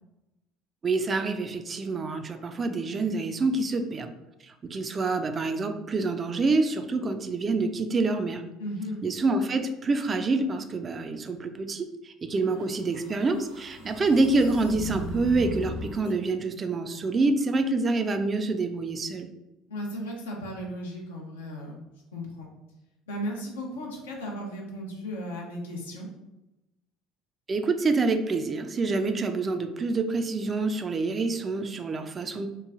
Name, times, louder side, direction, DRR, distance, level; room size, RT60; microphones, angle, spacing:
voice 1, 0.8-4.1 4.4-8.4 9.0-19.3 27.5-32.5, right 3 dB, 35° right, 7 dB, 0.3 m, -27 dB
voice 2, 8.6-9.0 19.7-21.8 22.1-22.5 23.1-26.1, equal, 80° left, -1 dB, 0.6 m, -35 dB
sound 1, 12.4-16.1, equal, 85° right, 1.1 m, -38 dB
3.0 x 2.2 x 2.4 m, 0.96 s
hypercardioid pair, 65°, 0 cm